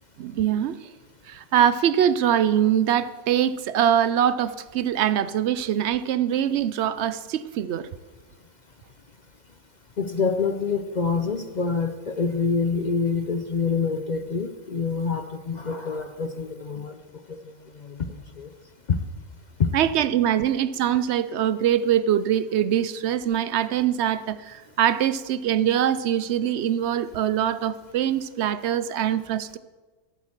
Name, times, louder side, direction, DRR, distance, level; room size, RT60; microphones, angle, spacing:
voice 1, 0.2-0.9 1.2-7.9 19.7-29.6, right 10 dB, 65° right, 14 dB, 0.7 m, -23 dB
voice 2, 10.0-17.0 17.3-17.4 17.8-18.1 18.4-18.5 18.9-19.0 19.6-19.7, left 5 dB, 55° left, 8 dB, 0.5 m, -26 dB
12.0 x 8.8 x 7.3 m, 1.3 s
omnidirectional pair, 1.5 m